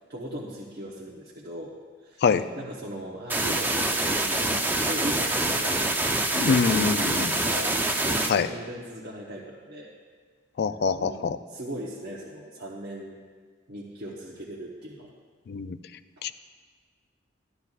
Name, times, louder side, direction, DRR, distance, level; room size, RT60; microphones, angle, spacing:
voice 1, 0.1-1.7 2.0-5.9 6.3-9.9 11.0-13.2 13.7-15.1, equal, 60° right, -5 dB, 1.0 m, -38 dB
sound 1, 3.3-8.3, right 2 dB, 10° right, 0.6 m, -25 dB
voice 2, 6.3-7.3 8.3-8.5 10.6-11.4 15.5-15.8 16.2-16.3, left 5 dB, 60° left, 13 dB, 0.4 m, -24 dB
13.5 x 11.0 x 2.4 m, 1.5 s
head